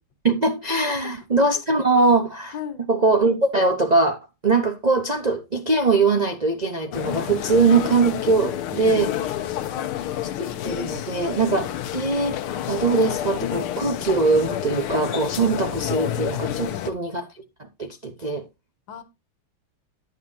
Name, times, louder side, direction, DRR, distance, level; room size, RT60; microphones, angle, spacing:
voice 1, 0.2-4.2 4.4-9.1 10.4-17.3 17.6-18.5, right 3 dB, 50° right, 0.5 m, -22 dB
sound 1, 6.9-16.9, left 11 dB, 85° left, 1.7 m, -29 dB
voice 2, 8.9-9.8 16.5-17.1 18.9-19.0, left 7 dB, 65° left, 1.9 m, -38 dB
10.5 x 9.2 x 2.7 m
omnidirectional pair, 2.3 m